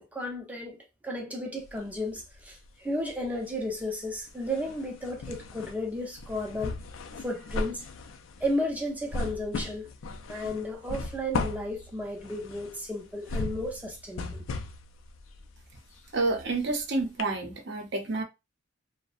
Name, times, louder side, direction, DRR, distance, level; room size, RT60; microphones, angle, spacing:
voice 1, 0.1-0.8 1.0-6.8 7.2-7.8 8.4-9.9 10.3-14.5, left 1 dB, 10° right, 0.5 m, -33 dB
sound 1, 1.6-2.7 3.0-16.8 17.2-17.3, left 3 dB, 70° left, 0.4 m, -37 dB
voice 2, 16.1-18.2, right 3 dB, 60° right, 0.6 m, -29 dB
2.5 x 2.0 x 2.4 m
head